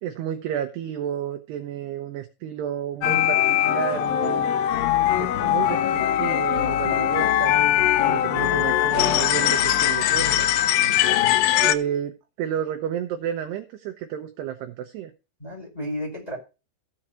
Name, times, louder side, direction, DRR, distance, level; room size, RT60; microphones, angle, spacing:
voice 1, 0.0-4.5 5.2-7.7 8.0-10.5 11.6-15.1, right 10 dB, 75° right, 7 dB, 2.5 m, -31 dB
sound 1, 3.0-11.7, left 12 dB, 80° left, 3.1 m, -21 dB
sound 2, 4.7-10.7, left 9 dB, 45° left, 2.7 m, -40 dB
voice 2, 10.8-11.3 15.4-16.4, equal, 10° left, 2 dB, 3.8 m, -34 dB
16.0 x 6.2 x 4.4 m, 0.30 s
omnidirectional pair, 5.8 m